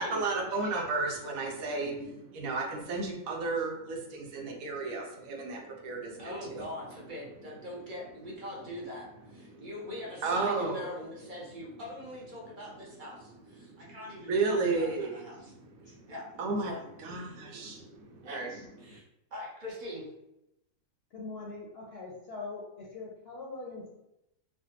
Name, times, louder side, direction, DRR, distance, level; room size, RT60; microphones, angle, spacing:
voice 1, 0.0-6.7 9.5-9.7 10.2-10.9 13.6-14.0 14.3-16.1 16.4-16.7 17.0-18.6 18.8-19.0, right 3 dB, 80° right, 1 dB, 1.0 m, -33 dB
voice 2, 6.2-15.5 15.8-16.2 16.6-16.8 17.1-17.4 18.2-18.4 18.8-19.0 19.3-20.0, left 1 dB, 45° right, -4 dB, 0.7 m, -42 dB
voice 3, 21.1-23.9, left 3 dB, 60° left, -3 dB, 0.7 m, -42 dB
3.2 x 2.2 x 2.9 m, 0.86 s
omnidirectional pair, 1.5 m